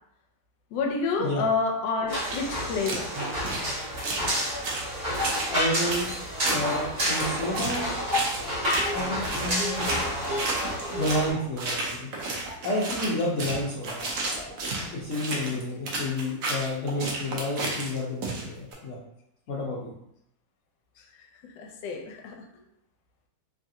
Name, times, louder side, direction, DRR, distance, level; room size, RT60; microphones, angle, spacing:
voice 1, 0.7-3.1 21.4-22.4, left 4 dB, 80° left, 2 dB, 1.2 m, -28 dB
sound 1, 2.1-11.3, equal, 50° right, 1.5 m, -29 dB
sound 2, 2.3-2.4 2.9-3.7 4.0-4.3 4.6-5.5 5.9-6.6 7.0-7.8 8.1-8.4 8.7-9.0 9.2-11.3 11.6-18.7, right 2 dB, 65° right, 0.9 m, -32 dB
sound 3, 5.4-5.5 6.1-9.6 10.4-13.1 13.7-15.1, right 1 dB, 10° right, 0.8 m, -41 dB
voice 2, 5.5-6.1 6.4-7.9 8.9-10.3 10.9-12.1 12.6-14.0 14.9-19.0 19.5-19.9 22.5-22.6, left 1 dB, 60° left, -8 dB, 0.8 m, -30 dB
3.2 x 2.4 x 2.7 m, 0.76 s
omnidirectional pair, 1.9 m